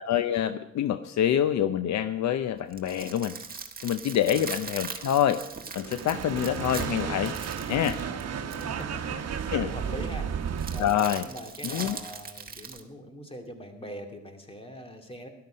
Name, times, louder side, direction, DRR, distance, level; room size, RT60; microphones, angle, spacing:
voice 1, 0.0-3.4 3.8-5.4 5.7-7.3 7.7-8.0 9.5-9.7 10.8-11.3 11.6-12.0, left 10 dB, 65° left, 12 dB, 0.6 m, -26 dB
sound 1, 2.6-8.8 10.6-12.8, right 5 dB, 30° right, 1.5 m, -40 dB
sound 2, 5.7-10.9, right 7 dB, 55° right, 1.3 m, -33 dB
voice 2, 8.6-9.0 9.3-10.4 10.7-10.9 11.3-15.3, equal, 20° left, 4 dB, 2.4 m, -42 dB
13.0 x 11.5 x 5.2 m, 0.88 s
cardioid pair, 90°, 30 cm